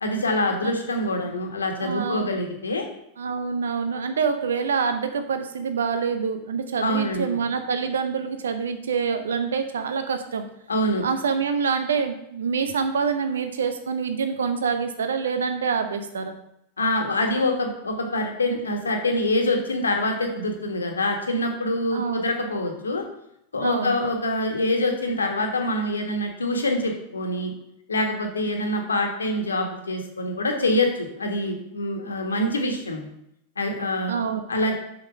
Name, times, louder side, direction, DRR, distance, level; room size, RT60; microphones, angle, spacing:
voice 1, 0.0-2.8 6.8-7.3 10.7-11.0 16.8-23.0 23.5-27.5 27.9-33.1 33.6-34.1 34.5-34.7, left 1 dB, 75° left, 3 dB, 1.5 m, -25 dB
voice 2, 1.8-2.3 3.2-10.5 11.0-16.3 21.9-22.3 23.6-24.0 34.1-34.4, right 6 dB, 65° right, 8 dB, 0.8 m, -26 dB
6.4 x 5.9 x 6.2 m, 0.78 s
figure-of-eight pair, 90°, 0 cm